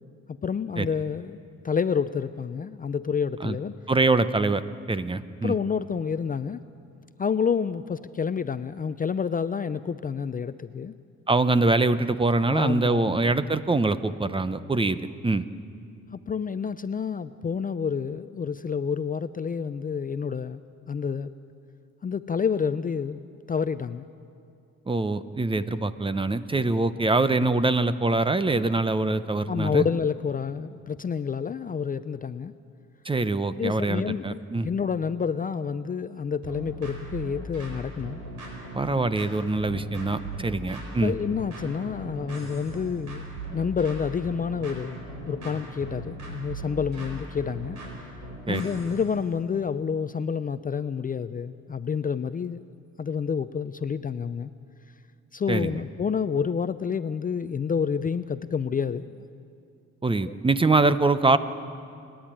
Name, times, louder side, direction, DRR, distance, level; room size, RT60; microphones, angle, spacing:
voice 1, 0.4-1.4 1.6-3.7 5.4-6.6 7.2-10.9 12.5-13.2 16.1-20.6 20.9-21.3 22.0-23.2 23.5-24.1 27.4-27.6 29.5-32.5 33.6-38.2 40.6-40.7 41.0-43.2 43.5-45.0 45.3-47.8 48.5-52.6 53.0-54.5 55.3-59.2 60.3-60.4, left 6 dB, 30° left, 13 dB, 0.5 m, -29 dB
voice 2, 3.9-4.6 4.9-5.5 11.3-15.4 24.9-29.8 33.0-34.7 38.7-41.1 48.5-48.7 55.5-55.8 60.0-61.4, right 3 dB, 15° right, 13 dB, 0.7 m, -24 dB
sound 1, 36.4-49.1, right 1 dB, 90° right, 4.9 m, -38 dB
29.0 x 10.5 x 8.9 m, 2.5 s
cardioid pair, 90°, 30 cm